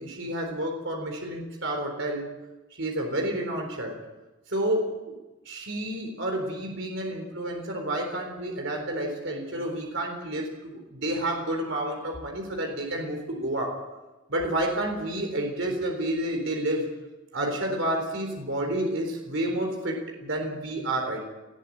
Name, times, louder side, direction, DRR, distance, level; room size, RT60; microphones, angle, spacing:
voice 1, 0.0-2.3 2.8-4.0 4.5-4.9 5.5-13.8 14.3-16.9 17.3-21.3, right 1 dB, 60° right, 2 dB, 4.0 m, -30 dB
19.5 x 14.0 x 9.4 m, 1.1 s
head